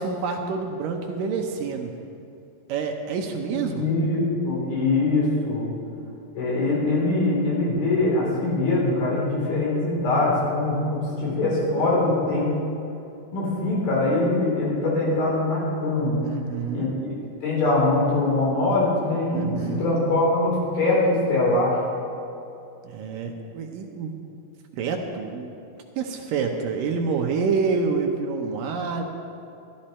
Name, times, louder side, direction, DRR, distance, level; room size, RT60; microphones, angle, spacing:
voice 1, 0.0-1.9 2.7-3.9 16.2-16.9 19.3-19.8 22.8-24.2 24.7-25.5 26.0-29.0, right 5 dB, 75° right, 3 dB, 2.3 m, -27 dB
voice 2, 3.5-5.7 6.4-12.5 13.3-16.2 16.7-16.9 17.4-21.8, left 2 dB, 75° left, -5 dB, 5.2 m, -23 dB
13.0 x 13.0 x 4.3 m, 2.7 s
omnidirectional pair, 4.3 m